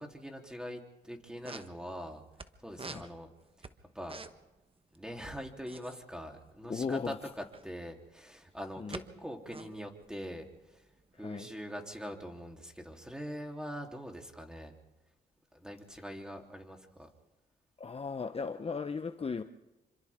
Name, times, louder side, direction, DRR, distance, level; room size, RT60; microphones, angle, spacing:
voice 1, 0.0-2.2 2.6-3.3 3.6-3.7 3.9-4.2 4.9-10.9 11.2-14.7 15.5-17.1, equal, 5° right, 3.6 m, -43 dB
sound 1, 1.0-1.1 1.3-2.5 2.7-4.6 4.8-5.0 5.2-7.7 8.3-9.0 9.3-11.2, right 3 dB, 30° right, 1.3 m, -47 dB
voice 2, 6.7-7.2 8.8-9.0 11.1-11.5 17.8-19.4, left 5 dB, 35° left, 0.9 m, -36 dB
27.5 x 25.5 x 3.8 m
supercardioid pair, 60°, 18 cm